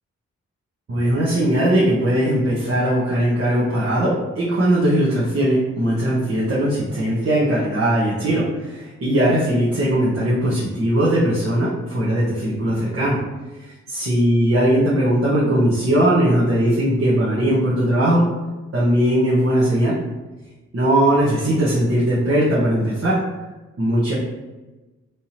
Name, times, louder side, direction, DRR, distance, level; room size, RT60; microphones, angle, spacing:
voice 1, 0.9-13.2 13.6-18.2 18.7-19.9 20.7-23.2 23.8-24.1, right 1 dB, 45° right, -7 dB, 1.1 m, -19 dB
3.4 x 2.8 x 2.9 m, 1.2 s
supercardioid pair, 45°, 32 cm